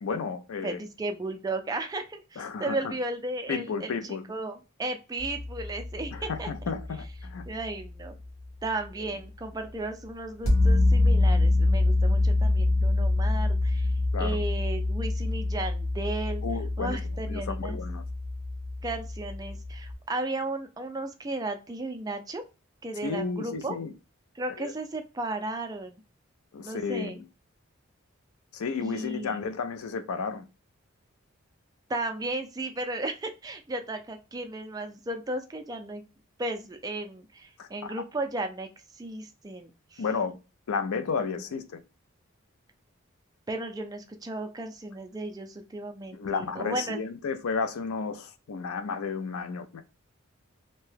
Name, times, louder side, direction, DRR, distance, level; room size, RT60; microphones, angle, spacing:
voice 1, 0.0-0.8 2.4-2.9 3.5-4.3 6.1-7.4 9.0-9.1 14.1-14.4 16.4-18.0 23.0-23.9 24.6-24.7 26.5-27.2 28.5-30.5 37.6-37.9 40.0-40.4 40.7-41.8 46.1-49.8, left 5 dB, 90° left, 0.5 m, -32 dB
voice 2, 0.6-6.5 7.4-8.2 8.6-13.9 14.2-16.4 16.8-17.8 18.8-22.4 22.8-23.8 24.4-26.0 26.6-27.2 28.8-29.4 31.9-36.0 36.4-40.0 43.5-47.0, right 2 dB, 15° right, 0.3 m, -35 dB
sound 1, 5.2-8.4 10.4-19.9, left 2 dB, 70° left, 1.0 m, -26 dB
2.7 x 2.2 x 3.2 m
head